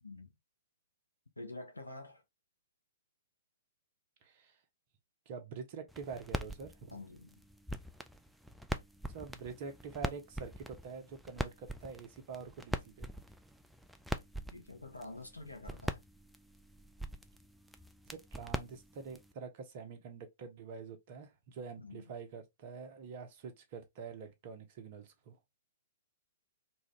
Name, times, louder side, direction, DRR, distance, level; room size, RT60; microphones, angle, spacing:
voice 1, 0.0-0.3 1.4-2.2 6.9-7.4 14.5-16.0 21.8-22.0, left 2 dB, 85° left, 0.7 m, -47 dB
voice 2, 4.2-4.5 5.3-7.0 9.1-13.1 18.1-25.4, right 5 dB, 45° right, 0.8 m, -46 dB
sound 1, 5.9-19.3, equal, ahead, 0.3 m, -43 dB
2.7 x 2.5 x 3.1 m
figure-of-eight pair, 115°, 0 cm